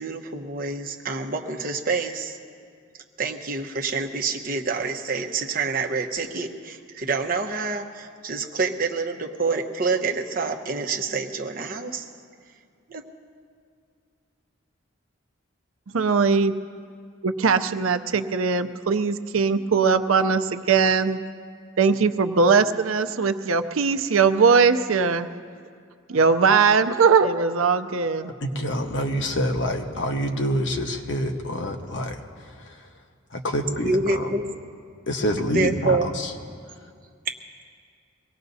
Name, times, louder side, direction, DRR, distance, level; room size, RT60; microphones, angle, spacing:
voice 1, 0.0-2.4 3.2-12.1 12.9-13.1 33.8-34.4 35.5-36.1 37.3-37.4, right 4 dB, 45° right, 3 dB, 1.0 m, -27 dB
voice 2, 15.9-16.5 17.2-21.2 21.8-25.3 26.1-28.3, right 5 dB, 90° right, 9 dB, 0.6 m, -20 dB
voice 3, 28.4-32.9 33.3-34.3 35.1-36.3, equal, 60° left, 3 dB, 1.2 m, -27 dB
23.5 x 18.0 x 2.7 m, 2.2 s
head